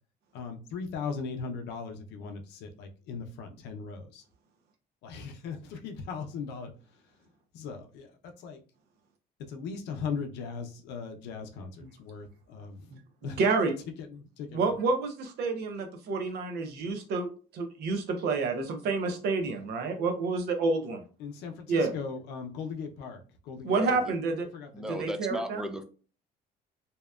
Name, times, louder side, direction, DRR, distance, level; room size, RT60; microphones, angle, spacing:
voice 1, 0.3-4.2 5.0-6.7 7.5-8.1 8.4-8.6 9.5-12.9 13.2-13.4 14.0-14.8 21.2-24.0 24.5-25.1, left 5 dB, 85° left, 0.5 m, -39 dB
voice 2, 13.2-13.7 14.5-21.0 21.7-21.9 23.6-24.5 24.9-25.6, right 3 dB, 70° right, 0.6 m, -29 dB
voice 3, 24.7-25.8, equal, 5° right, 0.4 m, -35 dB
2.8 x 2.1 x 2.3 m
cardioid pair, 110°, 17 cm